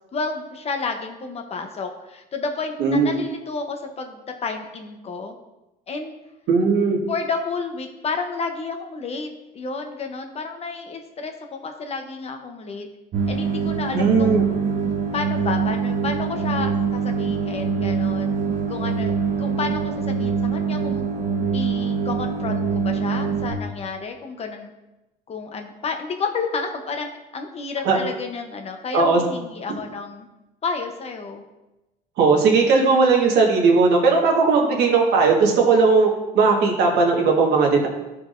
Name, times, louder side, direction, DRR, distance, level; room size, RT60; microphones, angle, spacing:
voice 1, 0.1-5.3 5.9-6.2 7.1-9.3 9.5-12.9 13.3-14.4 15.1-18.3 18.7-21.0 21.5-24.7 25.3-30.3 30.6-31.5, left 4 dB, 40° left, 4 dB, 0.8 m, -31 dB
voice 2, 2.8-3.2 6.5-7.0 13.9-14.4 27.8-28.0 28.9-29.2 32.2-36.1 36.3-37.9, right 4 dB, 75° right, 0 dB, 1.5 m, -17 dB
sound 1, 13.1-23.5, right 5 dB, 50° right, 1.1 m, -24 dB
12.0 x 4.7 x 2.6 m, 1.0 s
cardioid pair, 110°, 17 cm